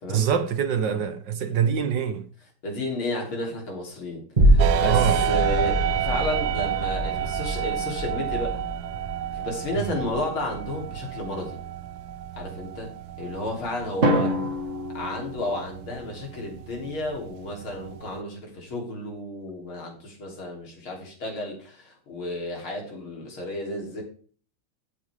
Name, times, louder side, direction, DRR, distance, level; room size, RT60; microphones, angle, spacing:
voice 1, 0.1-2.3 4.7-5.3 9.8-9.9 14.2-14.4, right 7 dB, 65° right, 1.5 m, -25 dB
voice 2, 2.6-8.6 9.3-11.6 12.4-14.4 14.9-24.0, left 1 dB, 75° left, 4.1 m, -32 dB
sound 1, 4.4-12.9 13.4-13.5, right 1 dB, 20° right, 2.4 m, -26 dB
sound 2, 4.6-18.2, right 13 dB, 80° right, 0.8 m, -31 dB
Drum, 14.0-16.0, equal, 35° right, 1.8 m, -26 dB
14.0 x 8.8 x 3.5 m
omnidirectional pair, 2.3 m